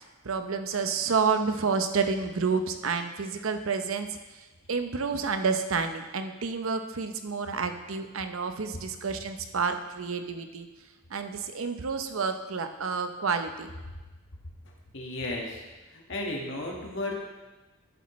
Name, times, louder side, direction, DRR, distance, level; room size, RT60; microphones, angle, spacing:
voice 1, 0.2-4.2 4.7-10.7 11.1-13.7, right 5 dB, 80° right, 7 dB, 0.7 m, -29 dB
voice 2, 14.9-15.6 16.1-17.2, left 2 dB, 60° left, -1 dB, 1.7 m, -33 dB
11.0 x 8.6 x 3.1 m, 1.2 s
head